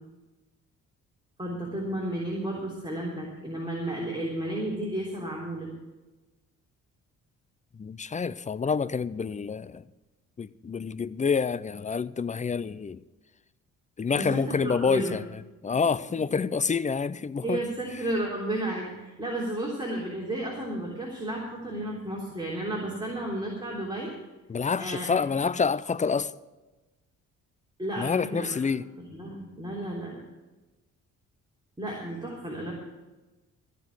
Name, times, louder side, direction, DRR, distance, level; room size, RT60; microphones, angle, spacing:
voice 1, 1.4-5.7 14.1-15.2 15.7-15.8 17.4-24.1 24.8-25.1 27.8-28.6 29.0-30.2 31.8-32.7, right 1 dB, 15° right, 3.4 m, -32 dB
voice 2, 7.8-9.8 10.4-13.0 14.0-15.2 15.6-17.6 24.5-26.3 28.0-28.8, left 5 dB, 20° left, 0.5 m, -27 dB
15.0 x 5.3 x 9.6 m
supercardioid pair, 55°, 36 cm